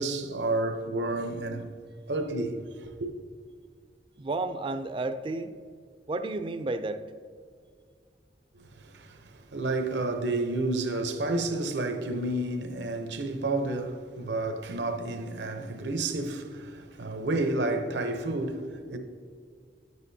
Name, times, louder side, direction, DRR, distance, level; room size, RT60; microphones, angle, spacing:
voice 1, 0.0-1.7 2.1-3.1 8.5-19.0, right 2 dB, 85° right, 0.8 m, -30 dB
voice 2, 4.2-5.5 6.1-7.0, right 2 dB, 30° right, 0.3 m, -31 dB
10.5 x 8.2 x 2.7 m
head